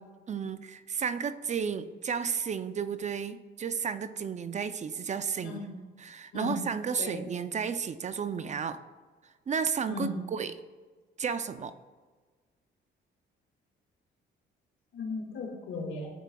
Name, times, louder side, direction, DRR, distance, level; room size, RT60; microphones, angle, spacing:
voice 1, 0.3-5.6 6.0-8.8 9.5-10.6 11.2-11.7, right 6 dB, 35° right, 12 dB, 0.4 m, -33 dB
voice 2, 6.3-6.6 7.0-7.1 9.9-10.1 14.9-16.1, left 3 dB, 80° left, 1 dB, 1.8 m, -36 dB
13.0 x 4.7 x 2.3 m, 1.4 s
cardioid pair, 90°, 20 cm